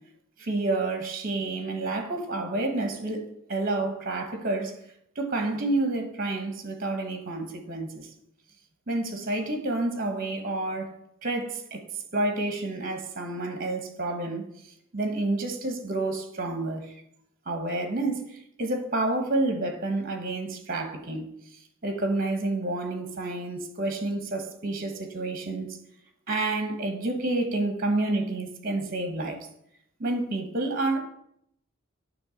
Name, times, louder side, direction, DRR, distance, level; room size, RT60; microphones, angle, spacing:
voice 1, 0.4-4.8 5.1-8.1 8.9-11.0 11.2-11.8 12.1-14.5 14.9-17.0 17.5-21.3 21.8-25.8 26.3-29.5 30.0-31.0, right 2 dB, 45° right, 1.2 m, -29 dB
9.5 x 3.2 x 6.4 m
head